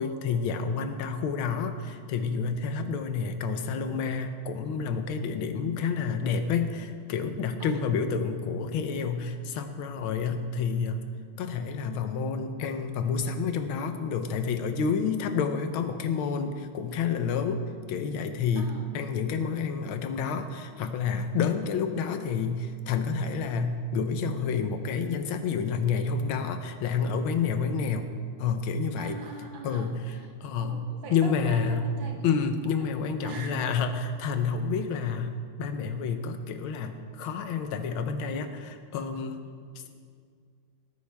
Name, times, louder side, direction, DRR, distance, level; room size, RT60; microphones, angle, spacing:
voice 1, 0.0-11.0 11.4-28.1 28.4-29.2 29.6-31.9 32.2-39.4, left 5 dB, 75° left, 8 dB, 1.6 m, -29 dB
voice 2, 18.5-19.0 21.5-21.7 29.0-30.3 30.6-32.3 33.2-33.7 39.8-39.9, right 3 dB, 65° right, 3 dB, 1.7 m, -42 dB
18.0 x 9.7 x 3.4 m, 2.1 s
omnidirectional pair, 2.4 m